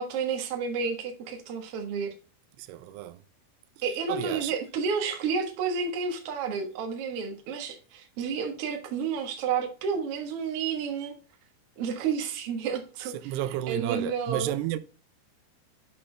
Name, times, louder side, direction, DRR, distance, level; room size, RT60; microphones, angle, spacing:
voice 1, 0.0-2.1 3.8-11.1 11.8-13.4 13.7-14.5, right 6 dB, 65° right, 1.5 m, -31 dB
voice 2, 2.6-3.2 4.1-4.5 13.1-14.8, right 13 dB, 90° right, 2.6 m, -32 dB
7.6 x 5.9 x 3.2 m
omnidirectional pair, 4.6 m